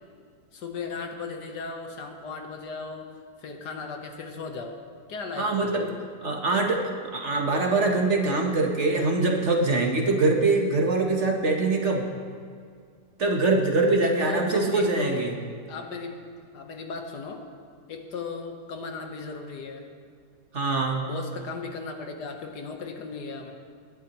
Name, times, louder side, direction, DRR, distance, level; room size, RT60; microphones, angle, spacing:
voice 1, 0.5-3.1 3.4-4.8 5.1-5.9 14.0-15.3 15.7-16.2 16.5-17.4 17.9-19.9 21.0-23.5, left 4 dB, 75° left, 4 dB, 1.6 m, -36 dB
voice 2, 5.4-5.9 6.2-12.0 13.2-15.3 20.5-21.1, right 3 dB, 45° right, 1 dB, 1.3 m, -23 dB
20.5 x 11.0 x 3.0 m, 2.1 s
omnidirectional pair, 1.8 m